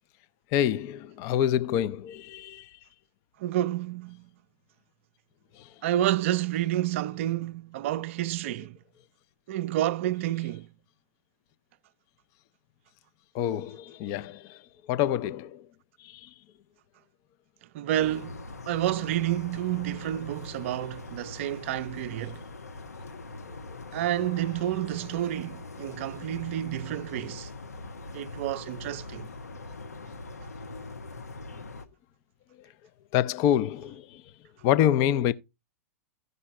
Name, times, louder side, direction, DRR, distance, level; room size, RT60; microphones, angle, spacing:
voice 1, 0.5-2.7 5.6-5.7 13.3-14.6 14.9-15.7 16.0-16.3 33.1-34.2 34.6-35.3, left 11 dB, 40° left, 0.5 m, -26 dB
voice 2, 3.4-4.3 5.8-8.8 9.5-10.7 17.7-18.4 18.7-22.4 23.9-27.5 28.1-29.3, right 13 dB, 55° right, 0.4 m, -29 dB
sound 1, 17.9-31.8, left 2 dB, 85° left, 1.0 m, -42 dB
15.5 x 5.4 x 3.1 m
hypercardioid pair, 105°, 8 cm